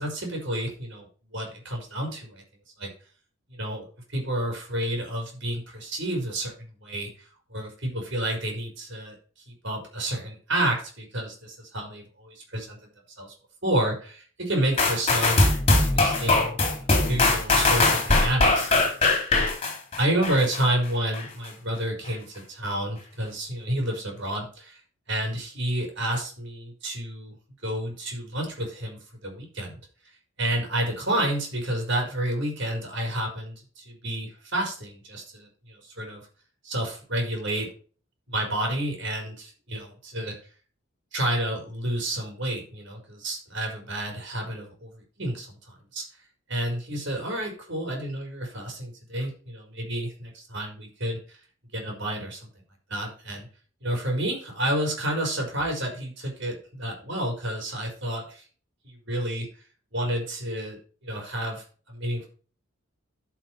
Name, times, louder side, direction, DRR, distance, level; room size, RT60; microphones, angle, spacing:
voice 1, 0.0-2.4 2.8-2.9 3.5-6.5 6.8-7.1 7.5-9.1 9.5-12.9 13.2-13.3 13.6-18.8 19.9-24.8 25.1-27.4 27.6-29.8 30.4-36.2 36.6-37.7 38.3-40.4 41.1-44.9 45.2-46.0 46.5-51.4 51.7-52.4 52.9-53.5 53.8-58.4 58.8-59.5 59.9-62.3, right 1 dB, 55° right, 1 dB, 4.6 m, -30 dB
sound 1, 14.8-20.6 21.1-21.2, left 2 dB, 30° left, 2.9 m, -21 dB
11.5 x 6.0 x 4.5 m, 0.40 s
head